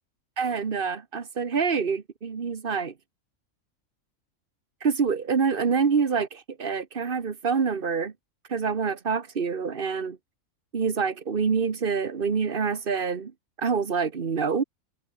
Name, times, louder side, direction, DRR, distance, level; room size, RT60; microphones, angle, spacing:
voice 1, 0.4-2.9 4.8-8.1 8.5-10.2 10.7-13.3 13.6-14.6, right 5 dB, 40° right, 1.4 m, -26 dB
omnidirectional pair, 1.4 m